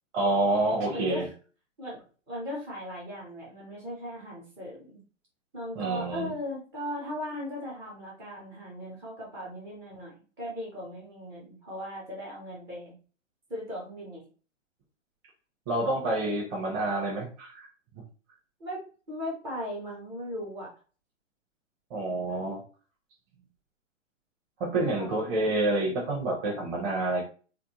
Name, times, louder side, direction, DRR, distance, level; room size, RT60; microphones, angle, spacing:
voice 1, 0.1-1.3 5.7-6.3 15.7-17.7 21.9-22.6 24.6-27.2, right 2 dB, 30° right, -2 dB, 0.9 m, -28 dB
voice 2, 0.9-1.2 1.8-2.0 2.3-5.0 5.5-12.9 13.5-14.2 18.6-18.8 19.1-20.7 24.8-25.1, equal, 5° right, -4 dB, 0.3 m, -37 dB
3.4 x 2.1 x 2.8 m, 0.37 s
figure-of-eight pair, 120°, 38 cm